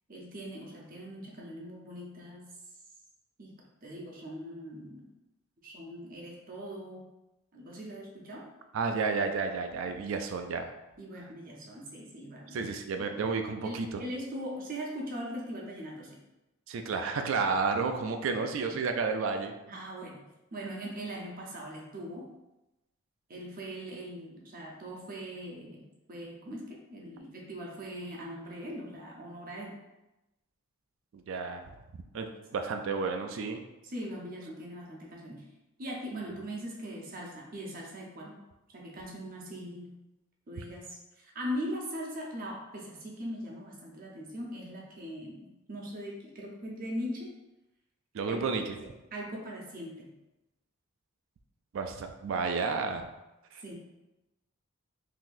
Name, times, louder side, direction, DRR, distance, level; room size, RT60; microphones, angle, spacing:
voice 1, 0.1-2.4 3.4-5.1 5.6-7.1 7.5-8.5 11.0-12.6 13.6-16.2 18.3-18.8 19.7-20.3 20.5-22.3 23.3-29.8 33.8-35.5 35.8-38.4 38.7-39.9 40.5-40.8 41.2-47.4 48.2-50.1 53.6-53.7, equal, 40° right, -2 dB, 0.7 m, -41 dB
voice 2, 8.7-10.7 12.5-14.0 16.7-19.5 31.1-31.6 32.1-33.6 48.1-48.8 51.7-53.1 53.5-53.6, right 4 dB, 65° right, 6 dB, 0.3 m, -31 dB
3.8 x 2.8 x 2.5 m, 0.98 s
head